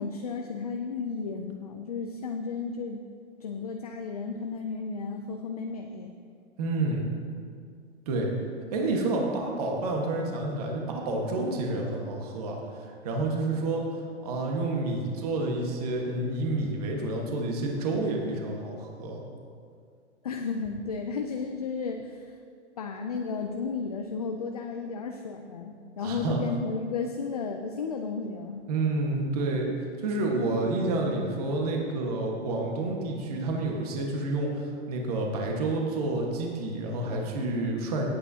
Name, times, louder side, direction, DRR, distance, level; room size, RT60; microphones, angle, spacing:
voice 1, 0.0-3.0 3.4-6.1 20.2-22.3 22.8-28.6, left 4 dB, 35° left, 4 dB, 0.4 m, -33 dB
voice 2, 6.6-7.0 8.1-8.3 8.7-13.8 14.2-19.2 26.0-26.5 28.7-29.7 30.0-38.1, right 2 dB, 35° right, 0 dB, 1.5 m, -29 dB
18.5 x 8.6 x 2.8 m, 2.3 s
hypercardioid pair, 170°, 35 cm